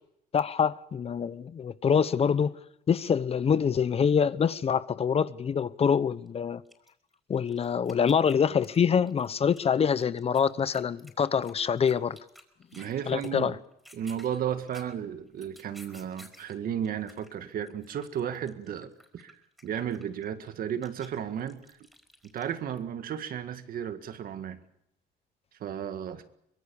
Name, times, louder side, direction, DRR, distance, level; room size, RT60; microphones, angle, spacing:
voice 1, 0.3-2.5 2.9-6.6 7.3-12.2 13.1-13.6, left 7 dB, 35° left, 0.8 m, -25 dB
sound 1, 6.3-6.4 6.6-8.8 9.1-12.9 13.2-13.4 13.7-16.6 16.8-22.8, equal, ahead, 4.8 m, -54 dB
voice 2, 12.7-13.5 13.9-21.6 22.3-24.6 25.6-26.2, right 9 dB, 60° right, 1.9 m, -34 dB
24.0 x 21.5 x 7.1 m
cardioid pair, 110°, 17 cm